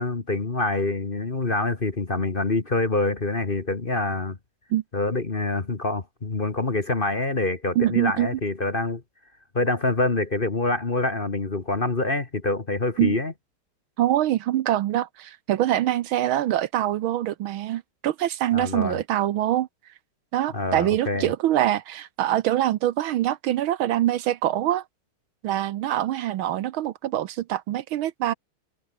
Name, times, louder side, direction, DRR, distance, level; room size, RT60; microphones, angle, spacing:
voice 1, 0.0-4.4 4.9-9.0 9.5-13.3 18.5-19.0 20.5-21.3, left 2 dB, 25° left, 1.6 m, -26 dB
voice 2, 7.7-8.4 13.0-13.2 14.0-19.7 20.3-24.8 25.4-28.3, right 13 dB, 75° right, 1.5 m, -24 dB
omnidirectional pair, 2.4 m